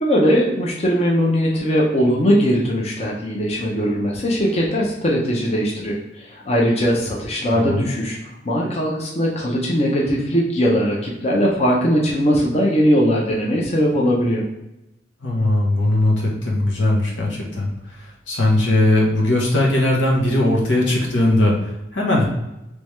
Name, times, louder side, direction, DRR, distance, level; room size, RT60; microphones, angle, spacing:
voice 1, 0.0-8.2 8.4-14.4, equal, 35° left, -2 dB, 0.6 m, -20 dB
voice 2, 15.2-17.7 18.3-22.2, left 1 dB, 90° left, -2 dB, 1.1 m, -19 dB
3.4 x 3.1 x 3.1 m, 0.93 s
head